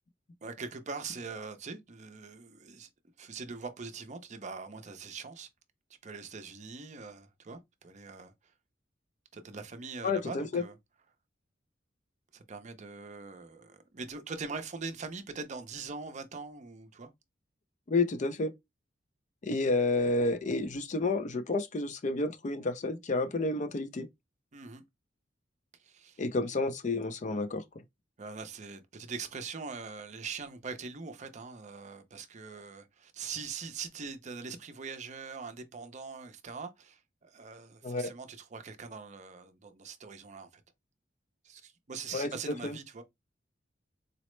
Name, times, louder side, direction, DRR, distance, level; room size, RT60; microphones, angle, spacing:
voice 1, 0.4-2.9 3.2-5.5 6.0-8.3 9.3-10.7 12.3-17.1 24.5-24.8 25.8-26.2 28.2-40.6 41.4-43.0, right 4 dB, 40° right, 0.5 m, -42 dB
voice 2, 10.0-10.6 17.9-18.5 19.4-24.1 26.2-27.6 37.8-38.1 42.1-42.3 42.6-42.8, left 3 dB, 40° left, 0.5 m, -30 dB
4.1 x 2.0 x 3.1 m
head